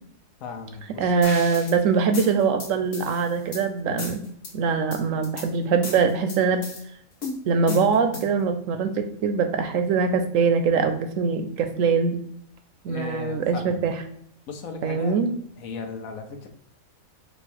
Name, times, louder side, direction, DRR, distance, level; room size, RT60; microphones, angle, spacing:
voice 1, 0.4-1.1 12.9-13.8 14.5-15.2 15.6-16.5, left 5 dB, 75° left, 5 dB, 1.1 m, -36 dB
voice 2, 1.0-4.2 4.5-6.6 7.5-12.2 12.8-13.9 14.8-15.3, right 5 dB, 70° right, 7 dB, 0.9 m, -23 dB
sound 1, 1.2-1.8 2.1-3.6 4.0-4.5 4.9-5.5 5.8-6.8 7.2-8.4, left 3 dB, 50° left, 1.2 m, -35 dB
4.4 x 2.3 x 4.2 m, 0.70 s
omnidirectional pair, 1.5 m